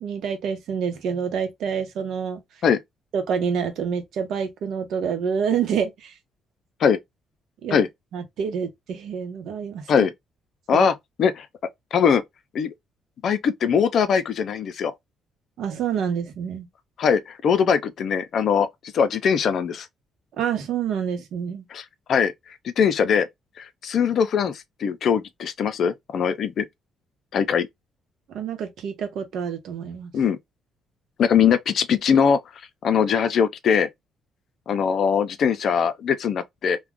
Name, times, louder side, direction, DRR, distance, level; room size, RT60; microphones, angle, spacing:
voice 1, 0.0-2.4 3.1-6.2 7.6-7.8 8.1-10.1 10.7-10.9 15.6-16.7 20.4-21.6 28.3-30.1, right 7 dB, 80° right, 0.8 m, -27 dB
voice 2, 11.9-12.2 12.5-12.7 13.2-14.9 17.0-18.7 18.9-19.9 21.7-21.8 22.1-22.3 22.6-23.3 23.6-26.7 27.3-27.7 30.1-30.4 31.2-32.4 32.8-33.9 34.7-36.8, left 7 dB, 65° left, 0.5 m, -21 dB
2.4 x 2.2 x 3.5 m
cardioid pair, 90°, 0 cm